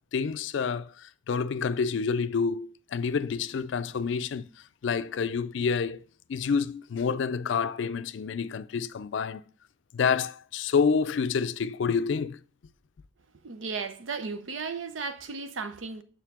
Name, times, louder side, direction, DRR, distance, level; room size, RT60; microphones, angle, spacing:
voice 1, 0.1-0.9 1.3-4.4 4.8-6.0 6.3-9.4 9.9-12.4, left 5 dB, 70° left, 0.4 m, -28 dB
voice 2, 13.4-16.0, right 4 dB, 85° right, 0.7 m, -35 dB
6.4 x 4.6 x 3.6 m
head